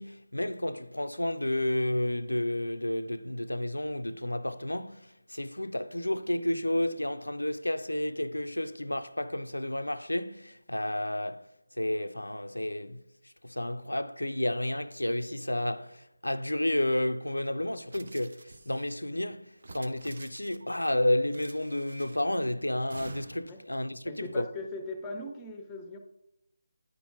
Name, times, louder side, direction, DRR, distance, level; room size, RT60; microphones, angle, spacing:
voice 1, 0.0-11.5 11.8-13.0 13.4-24.5, left 1 dB, 85° left, 0.3 m, -31 dB
sound 1, 17.9-19.0 19.6-20.8 21.3-22.3 22.9-23.5, right 2 dB, 55° right, 0.6 m, -49 dB
voice 2, 24.0-26.0, left 2 dB, 10° left, 0.7 m, -39 dB
9.6 x 6.0 x 2.4 m
figure-of-eight pair, 155°, 0 cm